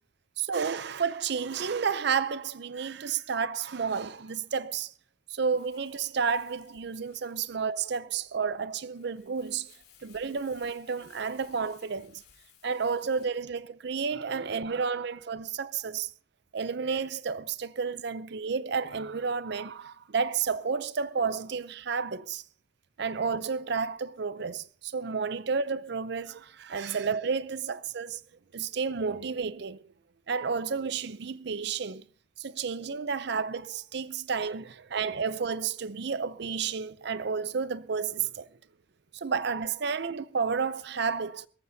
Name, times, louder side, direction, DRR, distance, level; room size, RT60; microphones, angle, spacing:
voice 1, 0.4-4.9 5.3-9.7 10.0-12.2 12.6-16.1 16.5-22.4 23.0-28.1 28.5-29.9 30.3-32.0 32.4-38.5 39.1-41.5, right 5 dB, 60° right, 0.6 m, -31 dB
Crumpling crinkling, 5.5-13.4, left 8 dB, 55° left, 3.8 m, -61 dB
23.0 x 14.5 x 2.7 m
head